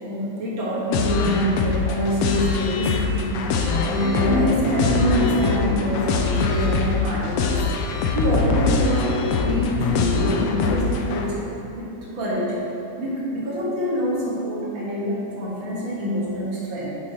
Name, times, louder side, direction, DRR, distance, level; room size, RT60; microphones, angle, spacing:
voice 1, 0.0-9.0 9.4-11.5 11.7-11.9 12.1-12.6 13.0-17.0, equal, 50° right, -7 dB, 1.9 m, -26 dB
sound 1, 0.9-11.3, left 4 dB, 80° left, 1.5 m, -23 dB
9.4 x 6.2 x 2.9 m, 3.0 s
omnidirectional pair, 3.4 m